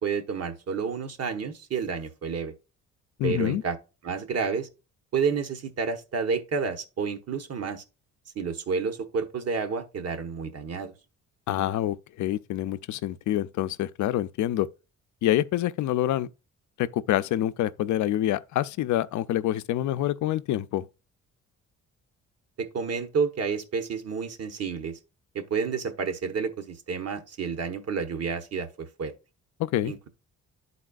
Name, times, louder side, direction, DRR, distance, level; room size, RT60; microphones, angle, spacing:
voice 1, 0.0-2.5 3.2-3.8 4.0-4.7 5.1-7.8 8.3-10.9 22.6-25.0 25.3-29.1 29.8-30.1, right 5 dB, 55° right, 1.1 m, -30 dB
voice 2, 3.2-3.6 11.5-14.7 15.2-16.3 16.8-20.9 29.6-29.9, left 13 dB, 70° left, 0.5 m, -26 dB
11.0 x 4.1 x 2.4 m
cardioid pair, 90°, 30 cm